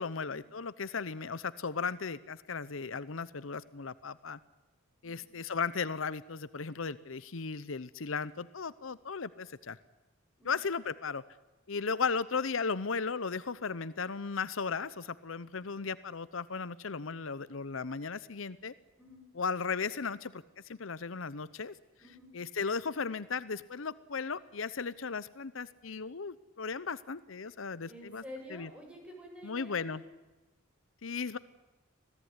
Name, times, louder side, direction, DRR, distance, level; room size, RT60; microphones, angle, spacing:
voice 1, 0.0-4.4 5.0-9.8 10.4-11.2 11.7-18.7 19.3-21.7 22.3-28.2 28.5-28.7 29.4-30.0 31.0-31.4, left 5 dB, 75° left, 16 dB, 0.8 m, -36 dB
voice 2, 22.0-22.3 27.9-30.0, equal, 5° right, 1 dB, 7.5 m, -49 dB
26.0 x 17.5 x 9.7 m, 1.1 s
head